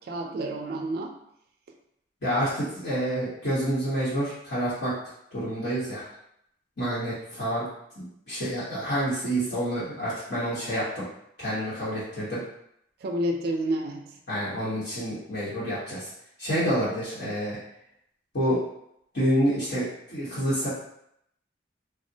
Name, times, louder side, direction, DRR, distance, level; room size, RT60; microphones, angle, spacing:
voice 1, 0.1-1.1 13.0-14.1, right 1 dB, 55° right, 2 dB, 0.3 m, -29 dB
voice 2, 2.2-4.9 5.3-6.1 6.8-7.6 8.0-11.0 11.4-12.4 14.3-16.1 16.4-17.6 18.3-18.6 19.1-20.7, equal, 65° left, -11 dB, 1.0 m, -28 dB
3.4 x 2.0 x 2.7 m, 0.75 s
head